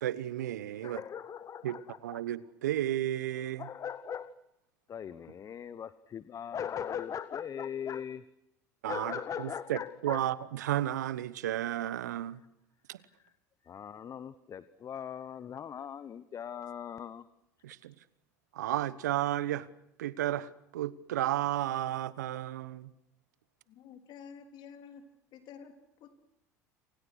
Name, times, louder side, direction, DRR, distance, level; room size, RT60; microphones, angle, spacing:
voice 1, 0.0-1.0 1.6-3.7 8.8-12.4 12.9-13.0 17.6-17.9 18.5-19.7 20.0-22.9, right 13 dB, 80° right, 1.0 m, -33 dB
voice 2, 0.8-2.2 3.6-4.3 4.9-8.2 8.9-10.2 13.6-17.2, left 8 dB, 35° left, 1.0 m, -40 dB
voice 3, 23.7-25.1 25.3-26.2, left 7 dB, 55° left, 3.8 m, -50 dB
28.5 x 26.5 x 6.4 m
hypercardioid pair, 70°, 9 cm